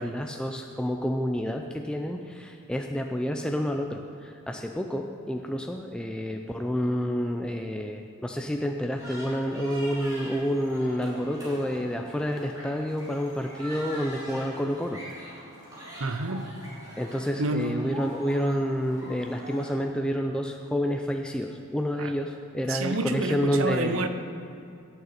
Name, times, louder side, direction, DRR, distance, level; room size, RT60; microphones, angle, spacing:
voice 1, 0.0-15.0 17.0-24.1, equal, 5° left, 3 dB, 0.4 m, -29 dB
sound 1, 9.0-19.7, equal, 15° right, 3.1 m, -43 dB
voice 2, 16.0-16.5 17.4-17.7 22.0-22.1 22.6-24.1, right 2 dB, 70° right, 9 dB, 0.7 m, -29 dB
17.0 x 6.8 x 4.3 m, 2.7 s
head